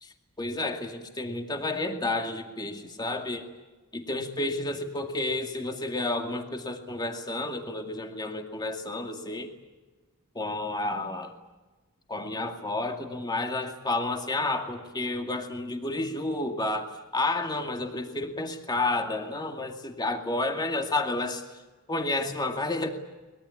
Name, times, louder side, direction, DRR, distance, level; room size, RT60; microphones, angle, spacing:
voice 1, 0.0-3.4 3.9-9.5 10.4-11.3 12.1-21.4 21.9-22.9, left 2 dB, 20° left, 4 dB, 2.3 m, -31 dB
24.0 x 22.0 x 8.6 m, 1.2 s
head